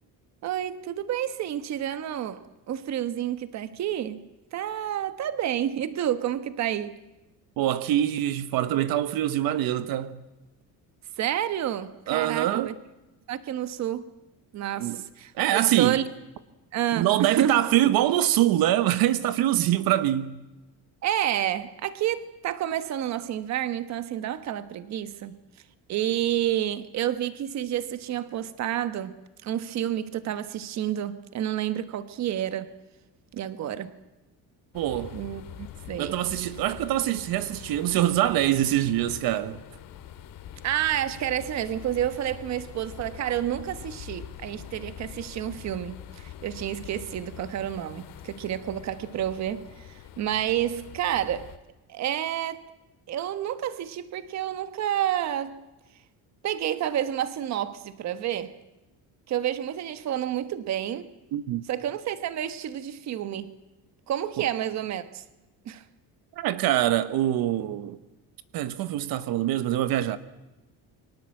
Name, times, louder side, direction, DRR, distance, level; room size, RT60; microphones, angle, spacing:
voice 1, 0.4-2.4 2.7-4.2 4.5-7.0 11.2-12.7 13.3-14.0 14.5-16.0 16.7-17.6 21.0-25.4 25.9-32.7 33.3-33.9 35.1-36.2 40.6-51.5 51.9-52.7 53.1-55.6 56.4-58.5 59.3-61.1 61.7-63.5 64.1-65.2 65.6-65.8, right 11 dB, 45° right, 1.3 m, -29 dB
voice 2, 7.6-10.2 12.1-12.7 14.8-15.0 15.3-16.0 16.9-20.4 34.7-35.2 36.0-39.6 61.3-61.6 64.4-64.5 66.4-68.0 68.5-70.2, right 13 dB, 70° right, 1.1 m, -24 dB
sound 1, 34.7-51.6, left 10 dB, 60° left, 2.2 m, -44 dB
30.0 x 23.5 x 7.7 m
cardioid pair, 175°, 37 cm